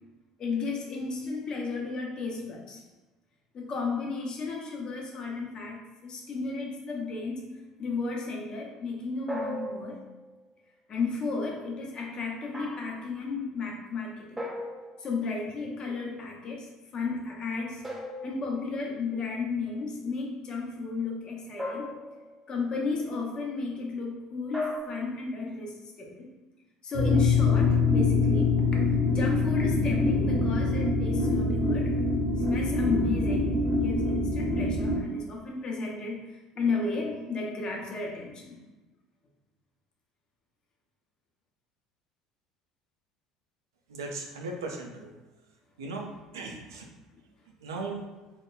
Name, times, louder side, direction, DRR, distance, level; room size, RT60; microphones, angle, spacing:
voice 1, 0.4-2.8 3.5-7.5 7.8-10.0 10.9-14.5 15.0-17.8 18.2-21.9 22.5-26.3 26.8-28.6 29.1-31.9 32.4-38.6, left 4 dB, 40° left, 0 dB, 0.6 m, -33 dB
sound 1, 9.3-10.3 12.5-13.0 14.4-15.2 17.8-19.0 21.6-22.5 24.5-24.8, left 1 dB, 10° right, 0.6 m, -37 dB
sound 2, 26.9-35.0, left 3 dB, 50° right, 0.7 m, -24 dB
voice 2, 43.9-45.1 45.8-46.9 47.6-48.0, right 3 dB, 75° right, 1 dB, 0.4 m, -37 dB
2.9 x 2.1 x 2.2 m, 1.1 s
figure-of-eight pair, 65°, 2 cm